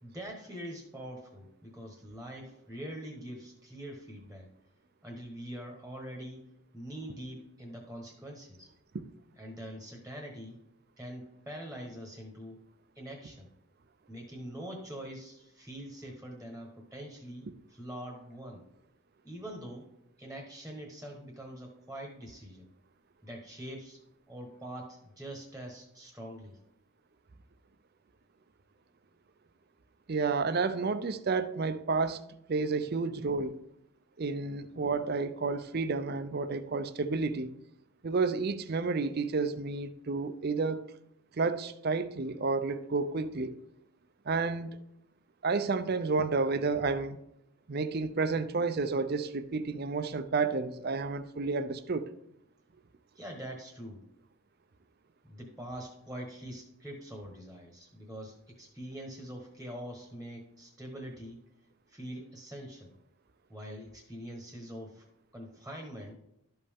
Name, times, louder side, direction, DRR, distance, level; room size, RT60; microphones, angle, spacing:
voice 1, 0.0-4.5 5.0-6.4 6.7-8.7 9.4-10.6 11.0-12.6 12.9-13.5 14.1-18.6 19.2-19.9 20.2-22.7 23.2-24.0 24.3-26.6 53.1-54.0 55.3-61.4 61.9-62.9 63.5-65.1 65.3-66.2, equal, 5° right, 1.2 m, -44 dB
voice 2, 30.1-32.2 32.5-33.6 34.2-37.5 38.0-40.9 41.3-43.6 44.3-44.8 45.4-47.2 47.7-52.1, right 4 dB, 45° right, 0.5 m, -31 dB
12.0 x 5.3 x 3.5 m
head